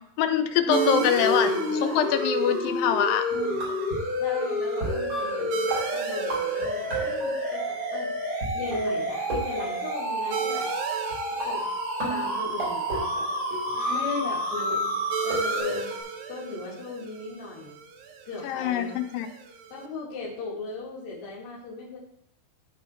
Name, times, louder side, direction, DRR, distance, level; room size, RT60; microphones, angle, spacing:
voice 1, 0.2-1.5 1.8-3.3 13.7-14.2 18.4-19.3, left 9 dB, 90° left, 9 dB, 2.4 m, -25 dB
voice 2, 0.7-2.0 4.2-8.1 8.5-10.7 11.4-11.7 12.1-15.9 16.3-17.8 18.2-18.9 19.7-22.0, left 3 dB, 60° left, -5 dB, 3.4 m, -38 dB
sound 1, 0.7-15.6, equal, 60° right, 5.9 m, -29 dB
sound 2, 0.7-19.9, right 7 dB, 80° right, 2.5 m, -37 dB
sound 3, 3.3-4.1 4.8-7.7 8.4-8.5 8.7-10.4 11.1-11.2 11.4-14.3 14.7-16.0, right 2 dB, 35° right, 4.3 m, -34 dB
13.0 x 4.7 x 4.4 m, 0.68 s
omnidirectional pair, 4.0 m